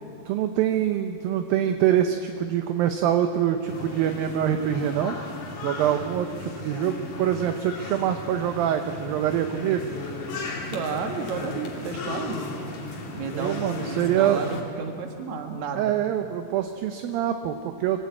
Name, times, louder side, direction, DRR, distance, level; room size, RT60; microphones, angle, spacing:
voice 1, 0.3-5.2 5.6-9.9 13.3-14.4 15.7-18.0, right 10 dB, 75° right, 6 dB, 2.4 m, -25 dB
sound 1, 3.7-14.6, left 3 dB, 60° left, 4.0 m, -36 dB
voice 2, 10.7-12.6 13.1-15.9, right 5 dB, 55° right, 3 dB, 2.7 m, -32 dB
24.5 x 16.0 x 8.4 m, 2.5 s
omnidirectional pair, 4.6 m